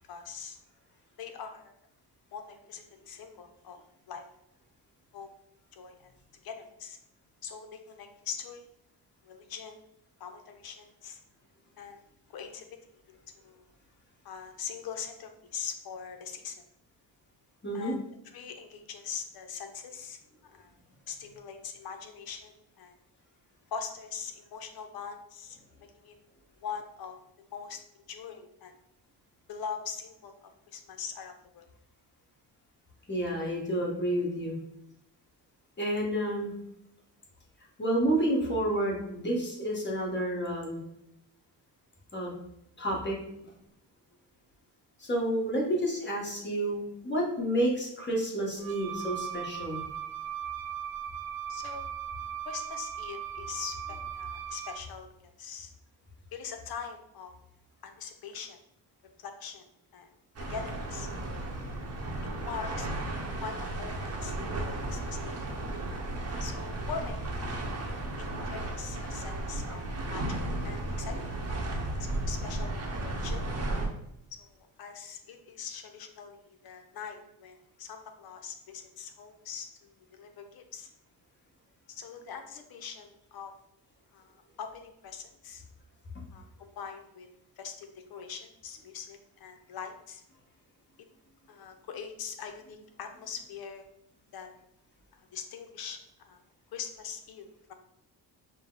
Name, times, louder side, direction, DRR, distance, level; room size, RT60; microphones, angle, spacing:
voice 1, 0.1-0.6 1.2-1.7 2.3-3.8 4.1-4.3 5.1-5.3 5.7-6.1 6.4-7.0 7.4-8.6 9.2-9.8 10.2-11.2 11.8-12.0 12.3-12.7 13.1-13.7 14.2-16.5 17.7-18.0 18.3-20.2 20.5-20.7 21.1-22.9 23.7-25.6 26.0-26.1 26.6-27.2 27.5-28.7 29.5-31.7 51.5-51.9 52.4-55.7 56.3-57.3 57.8-58.6 59.2-59.6 59.9-60.1 60.4-61.1 61.8-61.9 62.4-63.1 63.4-65.4 66.4-67.4 68.2-69.8 70.1-71.4 72.1-73.6 74.4-80.9 81.9-83.5 84.1-85.6 86.3-87.3 87.6-90.2 91.5-93.9 94.3-94.5 95.1-96.0 96.3-96.4 96.7-97.7, left 6 dB, 60° left, 6 dB, 0.7 m, -42 dB
voice 2, 17.6-18.0 33.1-34.6 35.8-36.5 37.8-40.8 42.1-42.3 42.8-43.1 45.0-49.8, right 1 dB, 25° left, -2 dB, 1.3 m, -30 dB
Wind instrument woodwind instrument, 48.6-54.9, right 9 dB, 55° right, 0.5 m, -38 dB
sound 1, 60.4-73.9, right 1 dB, 35° right, 0.9 m, -34 dB
5.2 x 2.2 x 3.9 m, 0.81 s
cardioid pair, 115°, 41 cm